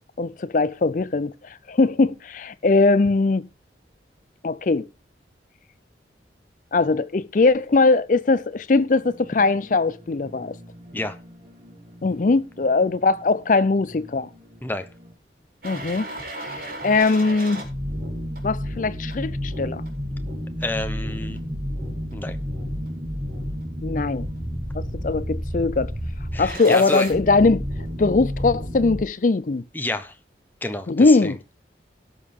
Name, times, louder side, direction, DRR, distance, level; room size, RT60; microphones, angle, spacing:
voice 1, 0.2-3.4 4.4-4.9 6.7-10.5 12.0-14.3 15.6-16.1 16.4-17.6 18.4-19.8 23.8-24.3 24.7-25.9 26.4-27.6 28.0-29.6 30.9-31.4, left 3 dB, 45° left, 0.5 m, -20 dB
sound 1, 9.0-15.1, equal, 35° right, 2.7 m, -47 dB
sound 2, 15.6-29.0, equal, 50° right, 4.3 m, -31 dB
voice 2, 20.6-21.4 22.1-22.4 26.3-27.1 29.7-30.2 30.6-31.3, left 2 dB, 10° left, 0.8 m, -29 dB
17.5 x 6.5 x 3.6 m
head